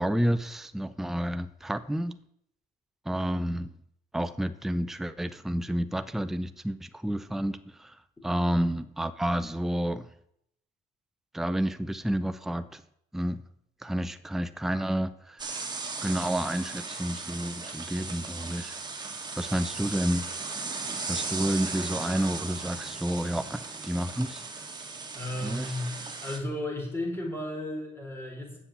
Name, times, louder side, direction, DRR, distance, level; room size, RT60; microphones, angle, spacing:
voice 1, 0.0-2.2 3.1-3.7 4.1-8.0 8.2-10.1 11.3-12.8 13.1-13.4 13.8-15.7 16.0-18.8 19.4-20.3 21.1-24.4 25.4-25.7, right 1 dB, ahead, 0.6 m, -30 dB
sound 1, 15.4-26.4, right 4 dB, 25° right, 2.1 m, -37 dB
voice 2, 25.1-28.6, left 1 dB, 15° left, 4.5 m, -34 dB
8.2 x 7.2 x 8.6 m
cardioid pair, 110°, 17 cm